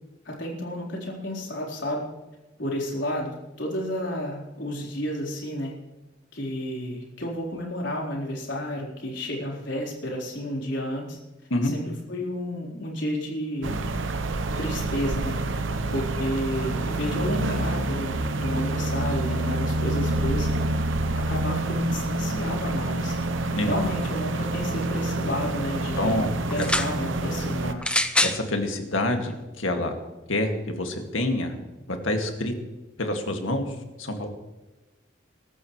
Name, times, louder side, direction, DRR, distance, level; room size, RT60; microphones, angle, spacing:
voice 1, 0.2-2.0 2.6-5.7 6.3-11.2 11.6-13.8 14.6-15.4 15.9-20.5 21.1-23.2 23.6-26.2 26.5-27.9, left 1 dB, 70° left, -2 dB, 4.1 m, -31 dB
sound 1, 13.6-27.7, right 2 dB, 75° right, 0.9 m, -27 dB
voice 2, 26.0-26.3 26.6-26.7 28.2-30.0 30.3-31.5 31.9-32.5 33.0-33.7 34.0-34.3, left 1 dB, 90° left, 4 dB, 2.1 m, -27 dB
sound 2, 26.5-26.9 27.8-28.4 29.3-29.4, left 2 dB, 5° left, 0.6 m, -24 dB
22.5 x 13.0 x 3.2 m, 1.1 s
head